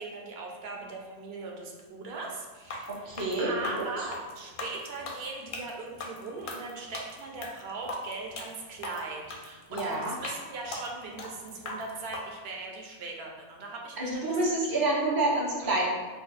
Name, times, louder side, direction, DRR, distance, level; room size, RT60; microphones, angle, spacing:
voice 1, 0.0-14.5 15.6-15.8, right 3 dB, 65° right, 0 dB, 0.7 m, -39 dB
sound 1, 2.6-12.2, left 2 dB, 60° left, 0.6 m, -39 dB
voice 2, 2.9-3.9 9.7-10.1 14.0-15.9, right 2 dB, 40° right, -4 dB, 0.3 m, -28 dB
2.5 x 2.3 x 3.9 m, 1.4 s
omnidirectional pair, 1.3 m